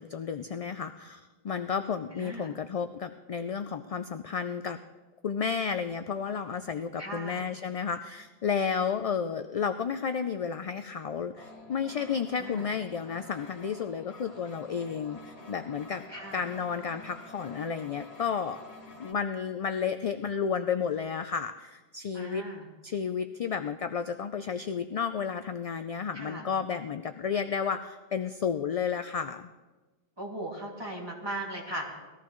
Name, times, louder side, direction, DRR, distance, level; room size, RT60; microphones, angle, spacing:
voice 1, 0.0-4.8 5.2-16.0 16.3-18.6 19.0-22.4 22.8-29.5, left 6 dB, 55° left, 9 dB, 0.4 m, -32 dB
voice 2, 2.1-2.5 7.0-7.4 12.4-12.7 16.1-16.4 22.1-22.7 26.1-26.5 30.2-31.8, right 1 dB, 25° right, -3 dB, 2.4 m, -38 dB
sound 1, 11.3-19.1, left 2 dB, 85° left, 2.6 m, -49 dB
19.5 x 14.0 x 3.1 m, 1.2 s
omnidirectional pair, 1.1 m